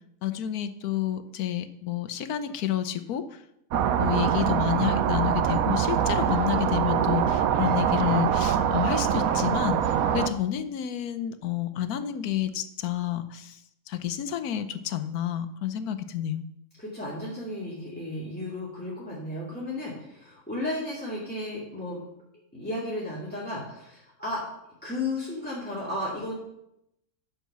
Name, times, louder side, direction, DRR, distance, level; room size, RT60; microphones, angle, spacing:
voice 1, 0.2-3.4 4.0-13.6 13.9-16.4, left 11 dB, 85° left, 11 dB, 1.3 m, -29 dB
sound 1, 3.7-10.3, right 9 dB, 75° right, 1.1 m, -24 dB
voice 2, 16.8-22.0 22.5-24.4 24.8-26.3, left 1 dB, 5° left, -7 dB, 2.5 m, -34 dB
11.0 x 5.3 x 6.8 m, 0.82 s
omnidirectional pair, 1.5 m